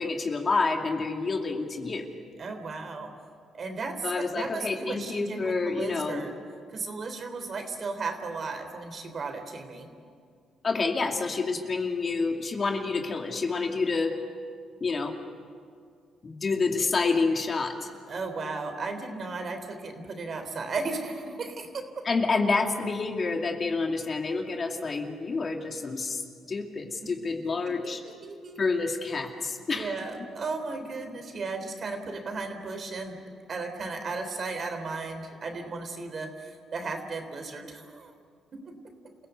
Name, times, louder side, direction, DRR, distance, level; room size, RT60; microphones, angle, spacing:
voice 1, 0.0-2.1 4.0-6.2 10.6-14.2 14.8-15.2 16.2-17.9 22.0-26.2 26.5-28.0 28.6-29.9, left 4 dB, 40° left, 3 dB, 2.4 m, -28 dB
voice 2, 2.4-3.1 3.5-6.3 6.7-9.9 18.1-22.0 27.0-27.1 27.7-28.6 29.7-33.2 33.5-38.1 38.6-38.7, right 3 dB, 45° right, 6 dB, 3.4 m, -35 dB
28.5 x 16.0 x 8.2 m, 2.2 s
cardioid pair, 90°, 0 cm